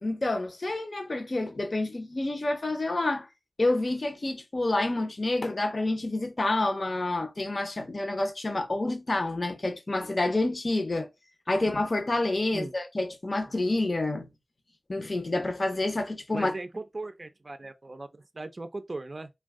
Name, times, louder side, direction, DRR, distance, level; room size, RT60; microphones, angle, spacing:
voice 1, 0.0-3.3 3.6-11.1 11.5-14.3 14.9-16.5, left 2 dB, 50° left, 0.6 m, -28 dB
voice 2, 16.3-19.3, right 2 dB, 45° right, 0.4 m, -38 dB
2.5 x 2.3 x 3.5 m
wide cardioid pair, 50°, 0 cm